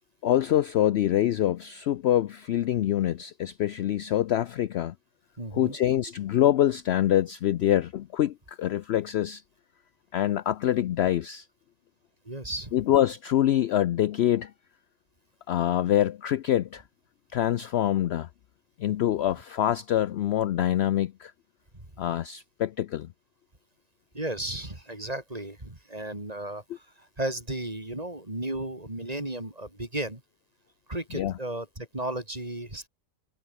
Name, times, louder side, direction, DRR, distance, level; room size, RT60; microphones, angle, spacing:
voice 1, 0.2-4.9 5.5-9.4 10.1-11.5 12.7-14.5 15.5-16.8 17.3-18.3 18.8-21.3 22.0-23.1 31.1-31.3, left 12 dB, 65° left, 0.7 m, -25 dB
voice 2, 5.4-5.8 12.2-12.7 21.7-21.8 24.1-30.2 30.9-32.9, right 1 dB, 25° right, 4.1 m, -34 dB
omnidirectional pair, 1.4 m